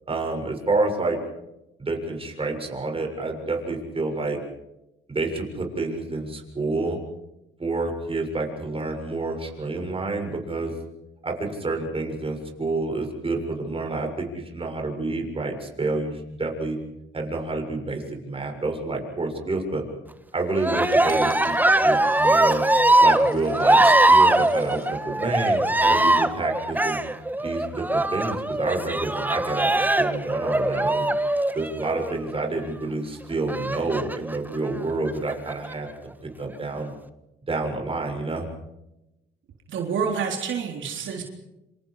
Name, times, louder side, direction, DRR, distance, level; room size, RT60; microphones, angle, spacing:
voice 1, 0.1-1.2 1.8-4.4 5.1-7.0 7.6-10.7 11.2-16.8 17.1-19.8 20.3-21.5 21.8-22.6 23.0-27.0 27.4-31.1 31.5-35.9 36.4-36.9 37.5-38.5, right 3 dB, 30° right, 2 dB, 6.8 m, -28 dB
Cheering, 20.5-32.2 33.5-34.4 35.1-35.7, right 1 dB, 10° right, 1.5 m, -21 dB
Coin (dropping), 20.9-24.9 25.6-26.1, left 5 dB, 50° left, 7.3 m, -51 dB
voice 2, 39.7-41.2, right 6 dB, 75° right, 2 dB, 3.8 m, -28 dB
27.5 x 27.0 x 5.0 m, 0.94 s
cardioid pair, 90°, 20 cm